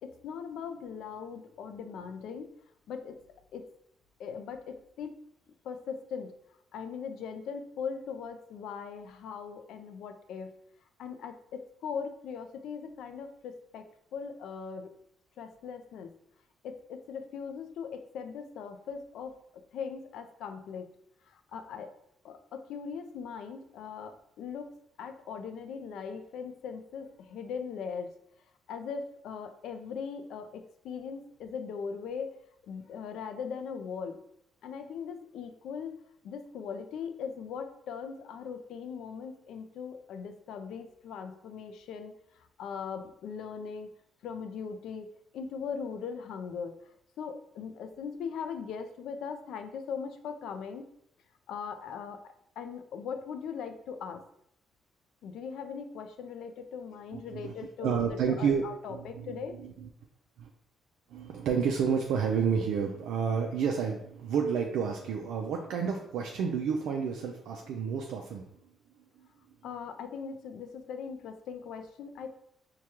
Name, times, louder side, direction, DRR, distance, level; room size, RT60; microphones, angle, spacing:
voice 1, 0.0-2.5 2.9-3.2 3.5-3.6 4.2-5.1 5.6-6.3 6.7-10.5 11.0-13.8 14.1-14.9 15.4-16.1 16.6-19.3 19.7-20.9 21.3-21.9 22.2-24.7 25.0-28.1 28.7-32.4 32.7-34.2 34.6-35.9 36.2-42.1 42.6-43.9 44.2-46.7 47.2-50.9 51.5-54.2 55.2-59.6 69.6-72.3, left 6 dB, 80° left, 7 dB, 0.4 m, -40 dB
voice 2, 57.1-57.5 57.8-58.6 58.9-59.9 60.4-60.5 61.1-68.5 69.2-69.3, right 6 dB, 85° right, 1 dB, 0.3 m, -30 dB
4.7 x 2.2 x 2.8 m, 0.72 s
cardioid pair, 90°, 0 cm